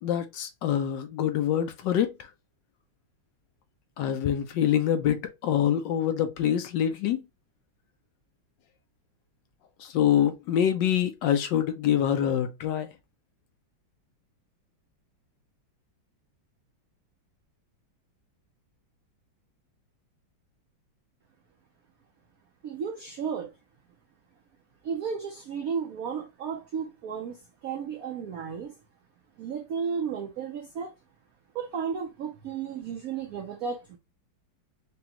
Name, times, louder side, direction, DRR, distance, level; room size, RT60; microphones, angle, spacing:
voice 1, 0.0-2.3 4.0-7.2 9.8-12.9, left 10 dB, 75° left, 1.1 m, -25 dB
voice 2, 22.6-23.5 24.8-28.7 29.4-30.9 31.5-34.0, right 6 dB, 80° right, 0.8 m, -33 dB
5.0 x 2.3 x 2.8 m
omnidirectional pair, 2.2 m